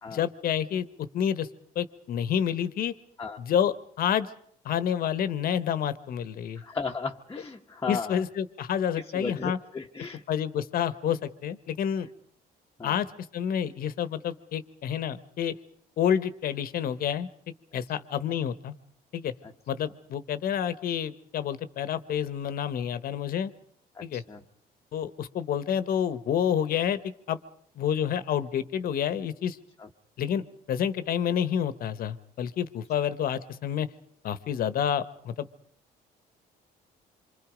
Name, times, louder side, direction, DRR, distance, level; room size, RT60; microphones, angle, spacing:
voice 1, 0.1-1.5 1.7-2.9 3.4-4.3 4.6-6.6 7.9-9.6 10.3-12.1 12.8-13.1 13.3-15.5 16.0-17.3 17.7-18.7 19.1-19.3 19.7-23.5 24.0-24.2 24.9-27.4 27.8-29.6 30.2-30.4 30.7-33.9 34.2-35.5, left 9 dB, 60° left, 14 dB, 1.1 m, -29 dB
voice 2, 6.6-8.2 9.1-10.2 12.8-13.0 24.0-24.4 29.8-29.9, left 4 dB, 20° left, 1 dB, 1.1 m, -35 dB
26.5 x 25.0 x 5.1 m, 0.64 s
cardioid pair, 110°, 17 cm